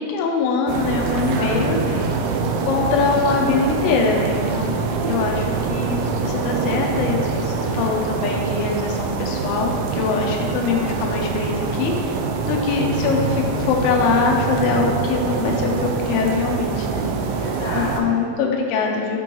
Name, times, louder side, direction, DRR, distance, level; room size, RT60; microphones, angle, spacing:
voice 1, 0.0-1.8 2.7-12.1 12.5-17.1 17.7-19.2, left 5 dB, 85° left, 0 dB, 3.3 m, -23 dB
sound 1, 0.7-18.0, right 5 dB, 85° right, 2.7 m, -24 dB
voice 2, 1.0-2.4 17.3-18.2, left 1 dB, 70° left, -6 dB, 2.5 m, -32 dB
8.8 x 3.0 x 5.3 m, 2.3 s
omnidirectional pair, 5.7 m